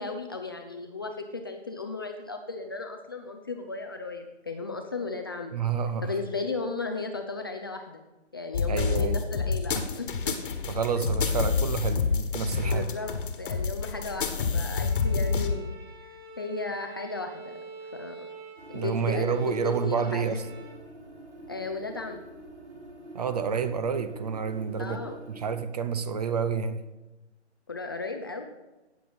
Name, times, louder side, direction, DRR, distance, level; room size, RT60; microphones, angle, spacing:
voice 1, 0.0-5.5 6.0-8.0 8.3-10.4 11.0-11.1 12.6-15.8 16.4-17.6 17.9-18.3 18.7-20.4 21.5-22.2 24.8-25.2 27.7-28.4, left 3 dB, 20° left, 0.5 m, -35 dB
voice 2, 5.5-6.1 8.7-9.2 10.7-12.9 18.7-20.4 23.1-26.8, right 6 dB, 35° right, 0.7 m, -29 dB
sound 1, 8.5-15.5, left 5 dB, 50° left, 1.5 m, -28 dB
Bowed string instrument, 14.5-20.9, right 3 dB, 20° right, 1.6 m, -46 dB
sound 2, 18.6-25.6, right 1 dB, 85° right, 3.9 m, -47 dB
17.5 x 6.9 x 4.2 m
figure-of-eight pair, 145°, 35 cm